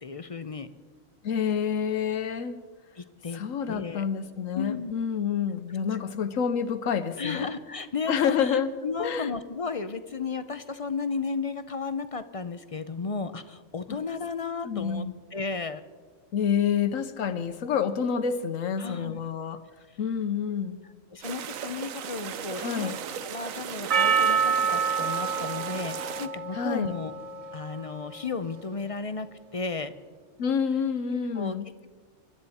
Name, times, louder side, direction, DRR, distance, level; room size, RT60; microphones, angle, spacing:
voice 1, 0.0-0.7 3.0-3.4 3.7-4.0 4.5-4.9 5.9-6.0 7.2-15.8 18.8-19.2 21.1-22.9 23.2-27.1 27.5-29.9 31.3-31.6, left 4 dB, 45° left, 11 dB, 0.5 m, -34 dB
voice 2, 1.2-2.6 3.3-7.5 8.1-8.7 9.0-9.3 13.9-14.0 14.6-15.1 16.3-19.6 20.0-20.8 22.6-23.0 26.5-26.9 30.4-31.6, left 7 dB, 80° left, 11 dB, 1.2 m, -28 dB
sound 1, 21.2-26.3, right 8 dB, 85° right, 1.2 m, -37 dB
Percussion, 23.9-28.4, right 6 dB, 60° right, 0.3 m, -28 dB
25.0 x 12.5 x 4.2 m, 1.4 s
omnidirectional pair, 1.4 m